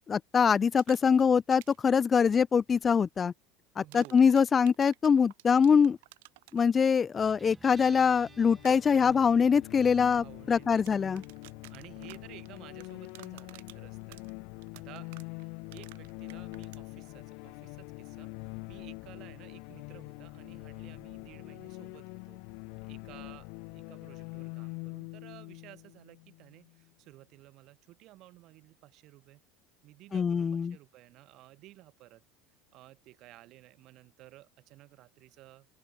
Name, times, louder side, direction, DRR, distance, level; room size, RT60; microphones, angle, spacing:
voice 1, 0.0-3.3 3.8-6.0 6.5-11.2 30.1-30.7, left 6 dB, 20° left, 0.3 m, -24 dB
sound 1, 0.6-1.2 1.5-1.9 3.9-6.6 8.6-8.8 10.6-16.8, right 21 dB, 85° right, 4.9 m, -52 dB
voice 2, 3.8-4.2 10.0-10.9 11.7-14.3 14.7-22.4 22.8-29.4 29.8-32.2 32.7-35.7, right 17 dB, 50° right, 6.5 m, -54 dB
Guitar, 7.2-24.4, right 4 dB, 15° right, 7.3 m, -62 dB
sound 2, 8.2-26.8, left 35 dB, 65° left, 2.6 m, -44 dB
open air
cardioid pair, 145°, 0 cm